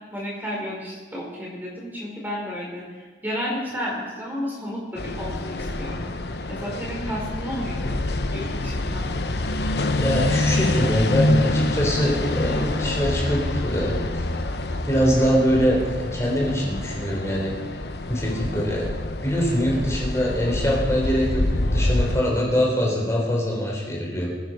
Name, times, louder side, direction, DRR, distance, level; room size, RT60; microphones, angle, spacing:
voice 1, 0.1-6.0 6.5-8.0 8.3-9.1, equal, 10° right, -4 dB, 4.7 m, -32 dB
sound 1, 5.0-22.2, left 2 dB, 65° left, 1.0 m, -26 dB
voice 2, 10.0-17.6 18.1-18.9 19.2-24.3, equal, 15° left, -2 dB, 3.9 m, -23 dB
21.5 x 9.8 x 5.5 m, 1.3 s
head